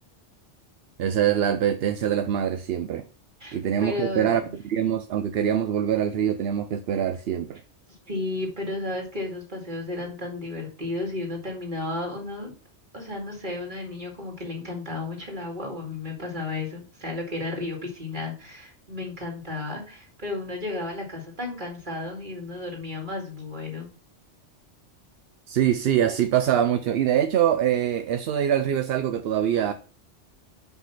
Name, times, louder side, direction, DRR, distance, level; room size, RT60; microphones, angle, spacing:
voice 1, 1.0-3.0 3.5-7.6 25.5-29.7, right 10 dB, 65° right, 0.7 m, -24 dB
voice 2, 3.4-4.5 8.1-12.5 12.9-23.9, left 2 dB, 40° right, 2.5 m, -33 dB
6.0 x 5.5 x 5.8 m
omnidirectional pair, 1.2 m